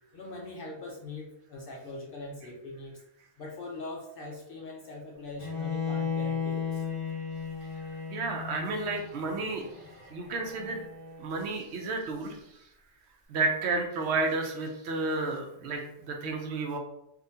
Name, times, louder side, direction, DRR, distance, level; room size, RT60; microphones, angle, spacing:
voice 1, 0.1-3.0 3.4-6.8, left 2 dB, 60° left, 0 dB, 0.6 m, -42 dB
Bowed string instrument, 5.4-11.4, left 6 dB, 25° right, 1.0 m, -35 dB
voice 2, 8.1-9.6 10.1-10.8 11.2-12.4 13.3-16.8, right 3 dB, 65° right, 3 dB, 0.8 m, -31 dB
3.7 x 2.5 x 2.6 m, 0.80 s
omnidirectional pair, 1.3 m